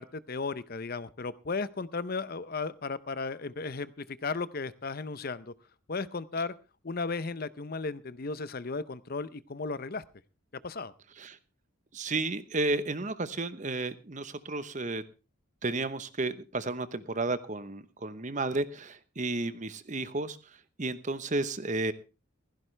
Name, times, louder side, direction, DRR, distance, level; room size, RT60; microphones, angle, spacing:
voice 1, 0.0-5.5 5.9-6.5 6.8-10.0 10.6-10.9, left 4 dB, 45° left, 16 dB, 0.6 m, -35 dB
voice 2, 11.9-15.0 15.6-21.9, right 2 dB, 35° right, 13 dB, 1.0 m, -32 dB
16.0 x 15.5 x 3.3 m, 0.32 s
head